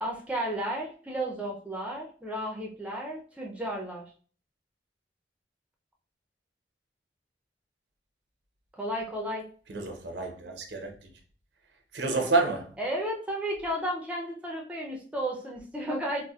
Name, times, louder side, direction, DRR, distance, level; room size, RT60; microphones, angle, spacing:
voice 1, 0.0-4.0 8.7-9.5 12.8-16.3, equal, 10° right, 0.5 m, -33 dB
voice 2, 9.7-11.1 11.9-12.7, right 3 dB, 75° right, 0.7 m, -29 dB
4.0 x 2.1 x 2.3 m
head